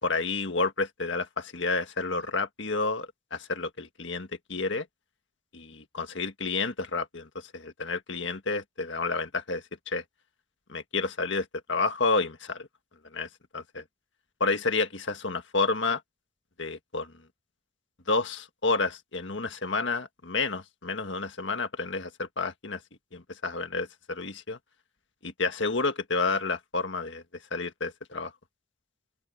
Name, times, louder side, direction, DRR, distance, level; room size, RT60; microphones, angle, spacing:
voice 1, 0.0-4.9 5.5-10.0 10.7-12.7 13.1-13.8 14.4-16.0 16.6-17.1 18.1-22.8 23.1-24.6 25.2-27.2 27.5-28.3, left 3 dB, 65° left, 1.8 m, -30 dB
open air
head